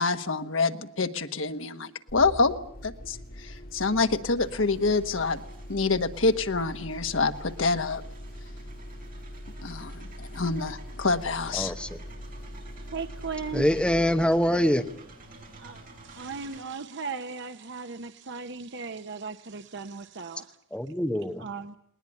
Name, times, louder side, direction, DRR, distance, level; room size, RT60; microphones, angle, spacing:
voice 1, 0.0-2.5 2.8-3.2 3.4-5.4 5.7-8.0 9.6-11.7, left 3 dB, 70° left, 8 dB, 1.4 m, -26 dB
sound 1, 2.1-15.6, equal, 50° left, 1.8 m, -43 dB
sound 2, 4.4-16.6, right 2 dB, 45° right, 5.9 m, -51 dB
voice 2, 11.5-12.0 13.5-14.8 20.7-21.5, equal, 5° left, 7 dB, 1.0 m, -24 dB
voice 3, 12.9-13.7 15.6-20.6 21.4-21.8, right 4 dB, 60° right, 8 dB, 0.9 m, -37 dB
20.0 x 19.5 x 9.7 m, 0.72 s
head